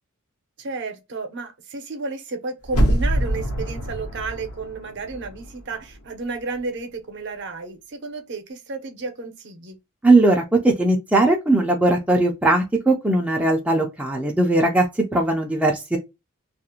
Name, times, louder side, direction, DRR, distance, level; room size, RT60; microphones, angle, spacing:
voice 1, 0.6-9.8, right 3 dB, 50° right, 0.6 m, -32 dB
sound 1, 2.7-5.6 5.9-6.0, right 1 dB, 80° left, 1.0 m, -24 dB
voice 2, 10.0-16.0, right 2 dB, 5° right, 0.4 m, -19 dB
2.4 x 2.0 x 2.8 m
head